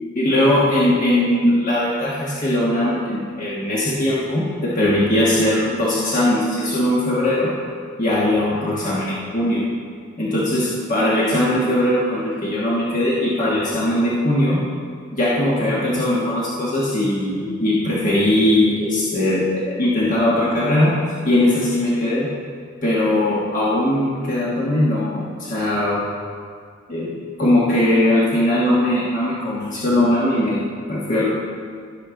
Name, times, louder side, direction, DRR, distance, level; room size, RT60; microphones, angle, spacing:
voice 1, 0.0-7.5 8.0-9.6 10.2-14.6 15.1-20.9 21.2-22.3 22.8-26.0 26.9-27.1 27.4-31.3, left 1 dB, 40° left, -7 dB, 1.3 m, -20 dB
16.0 x 6.6 x 3.8 m, 2.1 s
head